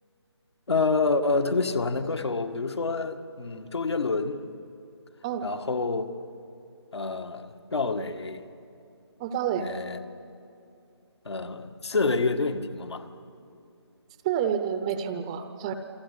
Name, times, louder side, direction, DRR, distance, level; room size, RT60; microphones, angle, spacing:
voice 1, 0.7-4.4 5.4-6.1 6.9-8.4 9.6-10.0 11.3-13.1, left 3 dB, 70° left, 1.9 m, -27 dB
voice 2, 9.2-9.7 14.2-15.7, right 9 dB, 15° right, 0.7 m, -28 dB
28.5 x 24.0 x 8.4 m
figure-of-eight pair, 160°, 14 cm